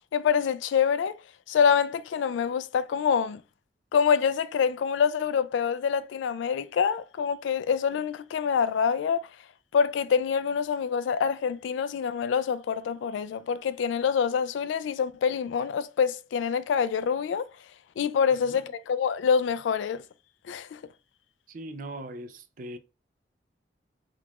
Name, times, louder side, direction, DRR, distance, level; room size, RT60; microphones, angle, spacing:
voice 1, 0.1-1.2 1.5-3.4 3.9-9.3 9.7-17.5 18.0-20.0 20.5-20.8, left 6 dB, 80° left, 0.3 m, -26 dB
voice 2, 21.5-22.8, right 1 dB, 45° right, 0.4 m, -40 dB
3.7 x 2.4 x 2.9 m
head